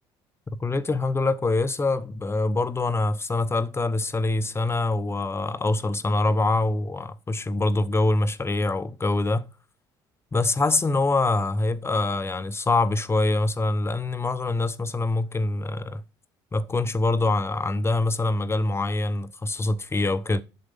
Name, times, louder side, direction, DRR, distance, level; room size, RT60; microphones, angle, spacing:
voice 1, 0.6-9.5 10.3-16.0 16.5-20.4, left 2 dB, 20° left, 0.8 m, -24 dB
8.1 x 7.4 x 5.3 m
supercardioid pair, 75°, 11 cm